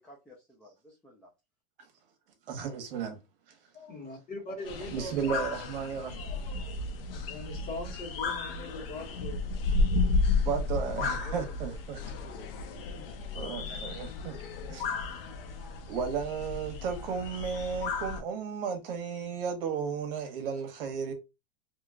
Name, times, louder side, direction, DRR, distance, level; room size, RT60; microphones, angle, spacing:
voice 1, 0.0-1.3 10.6-12.5, equal, 5° left, 0.5 m, -52 dB
voice 2, 2.5-3.2 4.9-6.3 10.4-12.0 13.3-14.4 14.7-14.9 15.9-21.1, right 6 dB, 70° right, 1.2 m, -34 dB
voice 3, 3.7-5.5 6.0-9.4 11.1-11.2 12.9-13.0, left 2 dB, 30° left, 1.7 m, -42 dB
sound 1, 4.7-18.2, left 3 dB, 70° left, 0.8 m, -33 dB
3.1 x 3.0 x 2.3 m
supercardioid pair, 155°, 29 cm